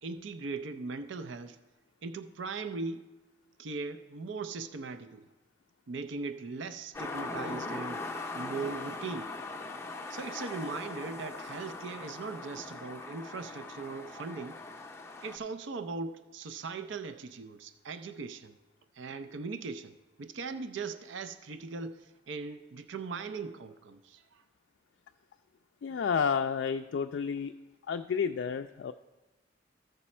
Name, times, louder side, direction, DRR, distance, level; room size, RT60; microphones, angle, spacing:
voice 1, 0.0-1.6 2.0-3.0 3.6-5.3 5.9-8.0 8.3-9.3 10.1-14.6 15.2-18.5 18.9-19.9 20.2-24.4, right 4 dB, 75° right, 9 dB, 0.5 m, -39 dB
sound 1, 6.9-15.4, left 3 dB, 15° left, 0.6 m, -40 dB
voice 2, 25.8-27.5 27.9-28.9, left 6 dB, 65° left, 7 dB, 0.3 m, -30 dB
14.5 x 5.3 x 4.2 m, 1.1 s
head